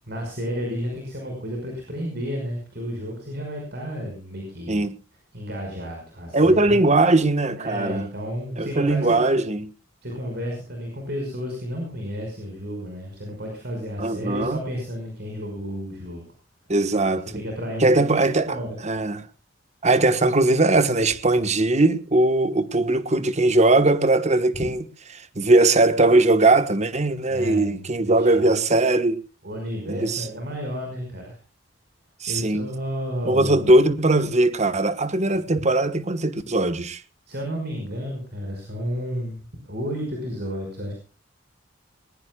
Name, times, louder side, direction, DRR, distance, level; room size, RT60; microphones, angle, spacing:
voice 1, 0.1-4.8 5.3-6.8 7.6-9.2 10.0-16.2 17.3-18.8 27.3-28.6 29.4-31.4 32.3-33.6 37.3-40.9, equal, 55° right, 5.4 m, -32 dB
voice 2, 6.3-8.1 8.6-9.7 14.0-14.6 16.7-17.3 17.8-18.6 18.8-19.2 19.8-24.8 25.1-29.2 29.9-30.3 32.2-32.7 33.2-37.0, right 2 dB, 35° right, 1.3 m, -20 dB
20.5 x 20.5 x 2.3 m
head